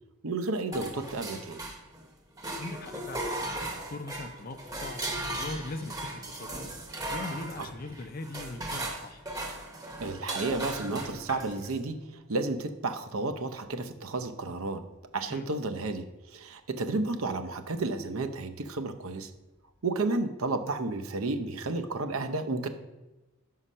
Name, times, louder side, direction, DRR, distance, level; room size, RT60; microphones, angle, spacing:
voice 1, 0.2-1.6 7.6-7.7 10.0-12.0 12.3-14.8 15.1-16.0 16.3-19.3 19.8-22.7, right 3 dB, 80° right, 8 dB, 0.7 m, -32 dB
sound 1, 0.7-2.1 2.4-11.8, right 1 dB, 15° right, 0.8 m, -37 dB
voice 2, 2.6-6.6 7.1-9.2 15.3-15.5, left 2 dB, 40° left, 9 dB, 0.6 m, -40 dB
6.2 x 5.7 x 5.5 m, 1.1 s
head